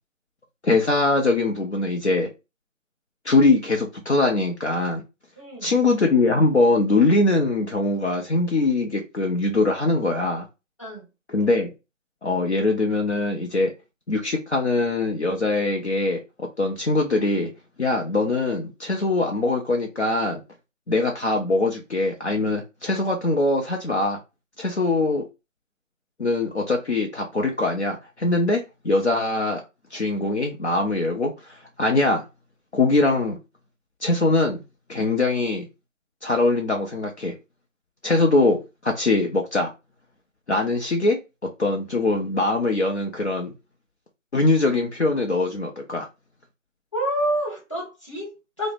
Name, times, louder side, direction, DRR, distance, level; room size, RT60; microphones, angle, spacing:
voice 1, 0.6-2.3 3.3-5.0 5.6-10.5 11.3-11.7 12.2-13.7 14.1-17.5 17.8-20.4 20.9-24.2 24.6-25.2 26.2-29.6 29.9-32.2 32.7-33.4 34.0-34.6 34.9-35.7 36.2-37.3 38.0-39.7 40.5-41.2 41.6-43.5 44.3-46.1, left 2 dB, 55° left, 0.5 m, -22 dB
voice 2, 5.4-5.8 10.8-11.1 46.9-48.7, right 1 dB, 25° left, 0.7 m, -28 dB
2.7 x 2.0 x 3.2 m
figure-of-eight pair, 160°, 40 cm